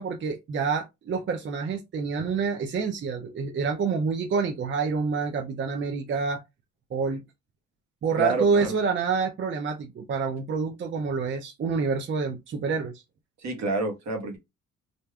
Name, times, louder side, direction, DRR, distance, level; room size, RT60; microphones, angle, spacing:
voice 1, 0.0-6.4 6.9-7.2 8.0-13.0 13.6-13.7, right 5 dB, 40° right, 0.5 m, -27 dB
voice 2, 8.2-8.7 13.4-14.4, right 2 dB, 65° right, 1.2 m, -28 dB
3.4 x 2.6 x 2.3 m
cardioid pair, 90°, 30 cm